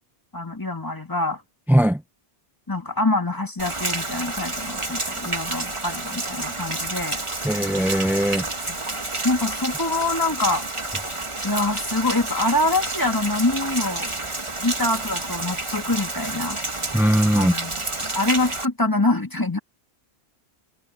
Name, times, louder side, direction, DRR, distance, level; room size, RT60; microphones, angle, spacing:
voice 1, 0.3-1.4 2.7-7.2 8.7-8.8 9.2-10.7 11.4-14.1 14.6-16.6 17.3-17.8 18.1-19.6, left 2 dB, 20° left, 2.0 m, -25 dB
voice 2, 1.7-2.0 7.4-8.5 16.9-17.5, equal, 5° right, 0.4 m, -19 dB
Rain, 3.6-18.7, right 2 dB, 30° right, 1.6 m, -29 dB
omnidirectional pair, 1.1 m